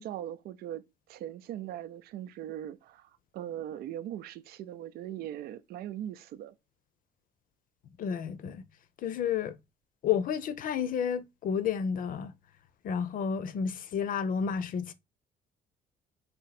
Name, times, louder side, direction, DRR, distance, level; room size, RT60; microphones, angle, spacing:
voice 1, 0.0-6.5, right 11 dB, 65° right, 0.4 m, -40 dB
voice 2, 8.0-8.6 9.0-9.6 10.0-12.3 12.8-14.9, left 7 dB, 55° left, 0.7 m, -31 dB
4.2 x 2.7 x 4.1 m
cardioid pair, 110°, 17 cm